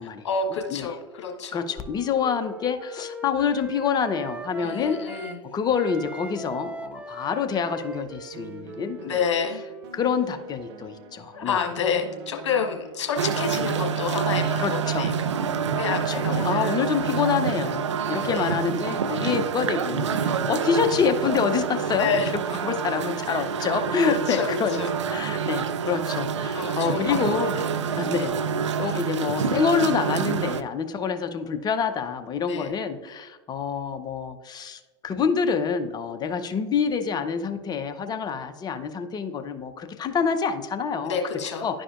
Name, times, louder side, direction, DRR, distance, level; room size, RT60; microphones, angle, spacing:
voice 1, 0.2-1.6 4.6-5.5 9.0-9.6 11.3-15.1 15.7-16.8 18.2-18.5 21.9-22.3 23.3-23.4 24.1-24.9 26.5-27.2 32.5-32.7 41.0-41.7, left 6 dB, 75° left, 2 dB, 1.3 m, -29 dB
Wind instrument woodwind instrument, 1.0-5.4 5.7-10.3, right 2 dB, 10° right, 0.4 m, -40 dB
voice 2, 1.5-5.0 5.5-9.2 9.9-11.6 14.6-15.1 15.8-24.8 25.1-27.5 28.0-28.3 28.8-41.1 41.6-41.8, left 6 dB, 25° left, 8 dB, 0.7 m, -27 dB
sound 1, 8.3-21.8, right 1 dB, 60° right, 0.9 m, -45 dB
sound 2, 13.2-30.6, right 6 dB, 85° right, 0.4 m, -27 dB
11.0 x 5.0 x 2.5 m, 1.3 s
hypercardioid pair, 95°, 15 cm